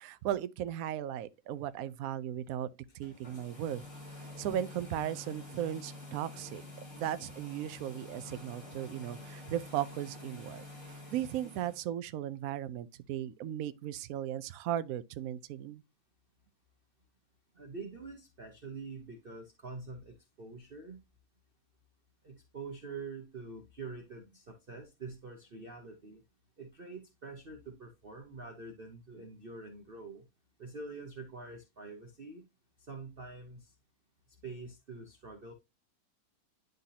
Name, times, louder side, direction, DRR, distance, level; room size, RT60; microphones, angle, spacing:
voice 1, 0.0-2.7 2.9-3.8 4.1-6.6 6.9-15.8, right 11 dB, 80° right, 0.7 m, -37 dB
sound 1, 2.9-11.8, left 2 dB, 45° left, 3.4 m, -48 dB
voice 2, 17.5-21.0 22.2-26.2 26.6-30.2 30.6-32.5 32.8-33.7 34.4-35.5, right 3 dB, 40° right, 0.9 m, -46 dB
11.0 x 3.8 x 2.7 m
omnidirectional pair, 2.2 m